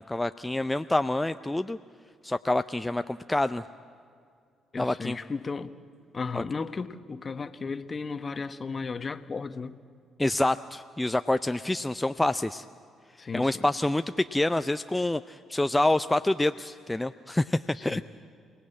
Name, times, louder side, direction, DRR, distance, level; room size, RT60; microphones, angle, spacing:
voice 1, 0.0-1.8 2.2-3.6 4.8-5.2 6.3-6.4 10.2-12.6 13.3-18.0, left 1 dB, 15° left, 0.5 m, -27 dB
voice 2, 4.7-5.8 6.1-9.8 13.2-13.7 17.7-18.0, left 4 dB, 40° left, 1.1 m, -35 dB
28.5 x 17.5 x 8.6 m
hypercardioid pair, 45°, 0 cm